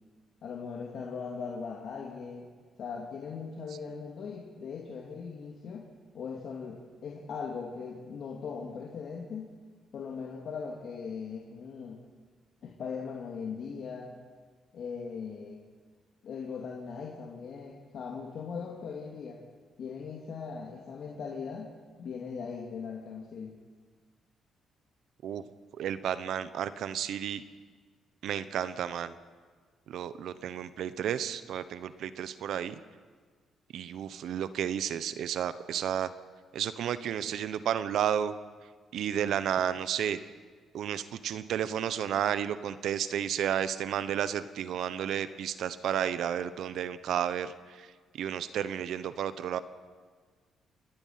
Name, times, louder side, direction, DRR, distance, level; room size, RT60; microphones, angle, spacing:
voice 1, 0.4-2.5 2.8-5.9 6.1-9.5 9.9-12.0 12.6-14.1 14.7-15.6 16.2-19.4 19.8-21.7 22.0-23.6, left 5 dB, 65° left, 0 dB, 2.6 m, -39 dB
voice 2, 25.8-27.4 28.2-29.1 29.9-32.8 33.7-36.1 36.5-38.3 38.9-40.2 40.7-47.9 48.2-49.6, right 9 dB, 75° right, 14 dB, 1.1 m, -32 dB
28.5 x 10.0 x 9.4 m, 1.5 s
cardioid pair, 90°, 0 cm